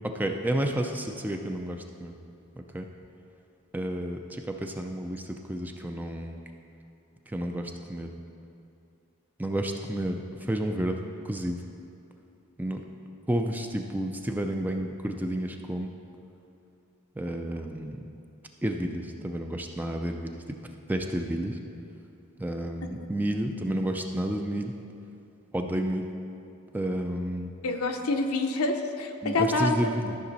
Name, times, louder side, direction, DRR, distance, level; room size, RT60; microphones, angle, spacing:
voice 1, 0.1-2.1 2.7-2.9 3.7-6.4 7.3-8.1 9.4-11.0 11.2-11.6 12.6-12.8 13.3-15.9 17.2-18.0 18.6-20.4 20.9-21.6 22.4-24.7 25.5-26.1 26.7-27.5 29.2-30.2, right 1 dB, 10° right, 4 dB, 0.4 m, -30 dB
voice 2, 27.6-29.8, left 2 dB, 75° left, 5 dB, 0.7 m, -27 dB
13.0 x 6.0 x 4.1 m, 2.6 s
head